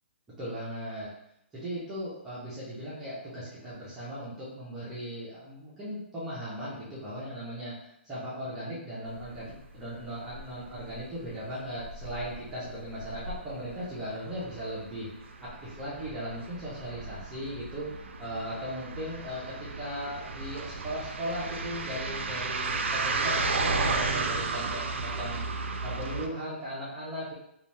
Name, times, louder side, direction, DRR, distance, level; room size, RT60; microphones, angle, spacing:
voice 1, 0.4-1.1 1.5-15.1 15.4-25.4 25.8-27.3, equal, 5° right, -10 dB, 0.4 m, -38 dB
sound 1, 9.2-9.5 9.8-11.0 11.2-11.5 11.8-26.3, right 3 dB, 85° right, 0.4 m, -34 dB
2.6 x 2.1 x 3.1 m, 0.77 s
hypercardioid pair, 175°, 6 cm